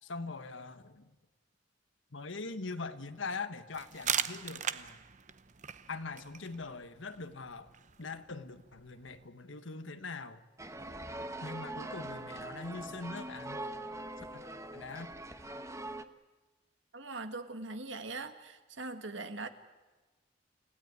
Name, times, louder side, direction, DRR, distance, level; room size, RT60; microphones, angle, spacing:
voice 1, 0.0-1.1 2.1-5.0 5.9-7.7 8.0-10.4 11.4-13.6 14.3-14.4 14.7-15.1, left 3 dB, 85° left, 10 dB, 1.4 m, -42 dB
sound 1, 3.7-9.3, right 9 dB, 40° right, 0.8 m, -40 dB
sound 2, 10.6-16.0, right 1 dB, 15° right, 1.0 m, -42 dB
voice 2, 16.9-19.5, right 3 dB, 70° right, 8 dB, 1.8 m, -41 dB
29.5 x 16.5 x 9.6 m, 1.2 s
head